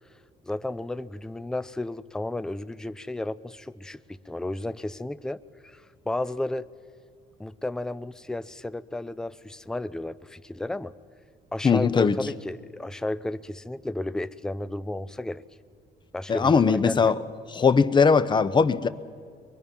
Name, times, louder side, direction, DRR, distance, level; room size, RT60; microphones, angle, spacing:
voice 1, 0.5-6.7 7.4-10.9 11.5-15.4 16.1-17.1, left 2 dB, 5° left, 14 dB, 0.5 m, -33 dB
voice 2, 11.6-12.2 16.3-17.2 17.5-18.9, left 5 dB, 25° left, 14 dB, 0.8 m, -20 dB
23.5 x 22.5 x 5.4 m, 2.1 s
cardioid pair, 110°, 17 cm